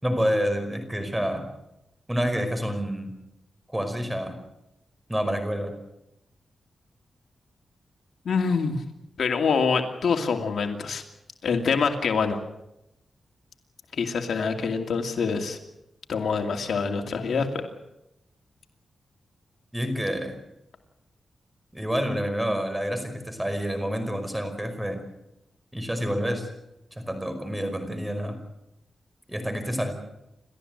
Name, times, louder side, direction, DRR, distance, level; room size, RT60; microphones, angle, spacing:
voice 1, 0.0-1.5 2.1-3.2 3.7-4.4 5.1-5.8 19.7-20.4 21.7-25.0 25.7-26.5 26.9-28.4 29.3-29.9, equal, 10° right, 7 dB, 5.2 m, -28 dB
voice 2, 8.2-8.8 9.2-11.0 11.4-12.4 13.9-15.6 16.1-17.6, left 5 dB, 75° left, 5 dB, 2.5 m, -25 dB
30.0 x 13.5 x 8.0 m, 0.87 s
cardioid pair, 90°, 0 cm